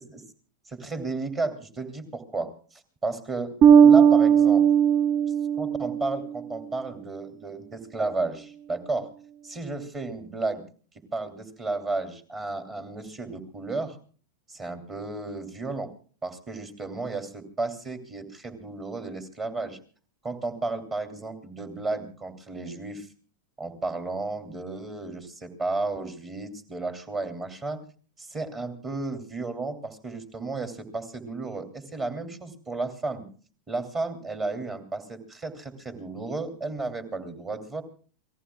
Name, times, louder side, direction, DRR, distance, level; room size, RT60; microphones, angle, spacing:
voice 1, 0.7-3.5 3.8-4.7 5.6-9.1 9.4-10.6 11.1-14.0 14.5-15.9 16.2-19.8 20.2-23.1 23.6-27.8 28.2-33.3 33.7-37.8, right 3 dB, 25° right, 8 dB, 2.9 m, -33 dB
Bass guitar, 3.6-6.3, right 8 dB, 40° right, 0.8 m, -17 dB
28.5 x 19.0 x 2.3 m, 0.42 s
figure-of-eight pair, 90°, 0 cm